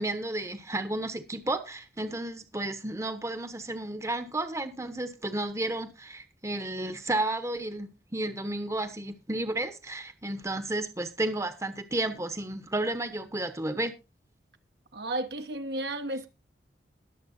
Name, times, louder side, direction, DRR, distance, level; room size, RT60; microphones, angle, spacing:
voice 1, 0.0-13.9, right 2 dB, 15° right, 1.0 m, -32 dB
voice 2, 14.9-16.3, right 1 dB, 65° right, 1.2 m, -33 dB
21.5 x 7.5 x 2.7 m
head